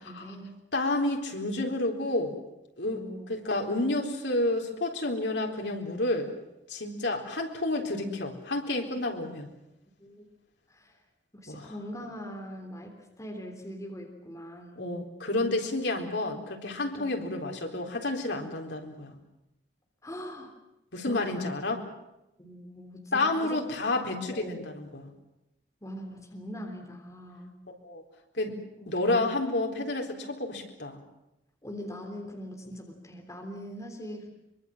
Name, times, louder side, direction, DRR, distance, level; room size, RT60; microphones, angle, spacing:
voice 1, 0.0-0.5 2.9-3.4 10.0-10.2 10.7-11.0 11.3-14.8 17.0-17.1 20.0-20.5 21.0-21.5 22.4-23.7 24.3-24.6 25.8-27.5 28.8-28.9 31.6-34.3, equal, 20° left, 2 dB, 3.5 m, -41 dB
voice 2, 0.7-2.4 2.8-3.0 3.3-6.3 6.7-9.5 11.5-11.7 14.8-19.2 20.9-21.8 23.1-25.1 27.8-28.0 28.4-28.6 28.9-31.0, left 2 dB, 85° left, 2 dB, 4.0 m, -30 dB
24.0 x 24.0 x 7.4 m, 0.90 s
head